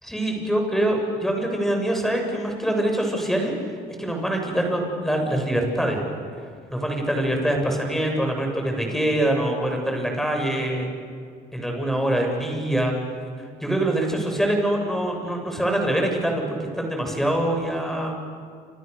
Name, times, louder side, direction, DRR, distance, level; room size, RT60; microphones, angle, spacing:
voice 1, 0.1-3.7 4.0-6.0 6.7-10.9 11.5-12.9 13.6-18.2, right 1 dB, ahead, 2 dB, 7.2 m, -24 dB
29.0 x 28.0 x 6.9 m, 2.2 s
cardioid pair, 110°, 17 cm